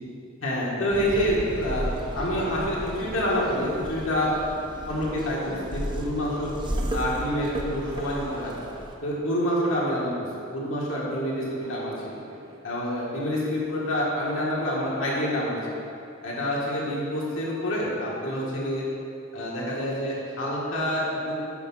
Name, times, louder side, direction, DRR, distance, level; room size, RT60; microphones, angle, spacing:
voice 1, 0.4-1.9 2.1-4.4 4.9-6.5 6.9-8.5 9.0-10.3 10.5-12.2 12.6-15.6 16.2-18.8 19.3-21.3, equal, 70° left, -5 dB, 1.8 m, -27 dB
sound 1, 0.9-9.0, right 1 dB, 25° right, 0.6 m, -34 dB
sound 2, 1.8-3.2 4.7-6.4 7.5-10.2 11.6-12.6, right 1 dB, 80° right, 0.9 m, -44 dB
7.0 x 4.8 x 5.6 m, 2.6 s
head